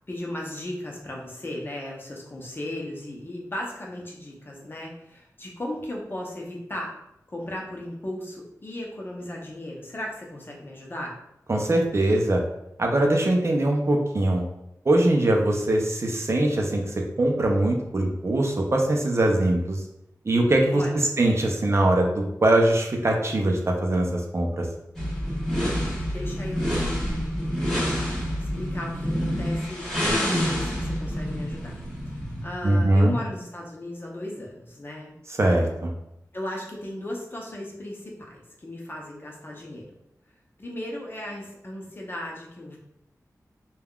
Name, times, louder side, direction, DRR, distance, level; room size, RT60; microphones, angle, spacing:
voice 1, 0.1-6.9 7.3-11.1 20.7-21.1 26.1-27.4 28.0-31.8 32.1-35.1 36.3-39.9 40.6-42.8, left 1 dB, 35° left, -2 dB, 0.7 m, -36 dB
voice 2, 11.5-12.4 12.8-14.4 14.9-19.8 20.2-24.7 32.6-33.1 35.4-35.9, right 1 dB, 45° right, 1 dB, 0.5 m, -22 dB
sound 1, 24.9-32.5, equal, 5° left, 1.4 m, -27 dB
3.4 x 2.2 x 2.3 m, 0.82 s
wide cardioid pair, 60°, 6 cm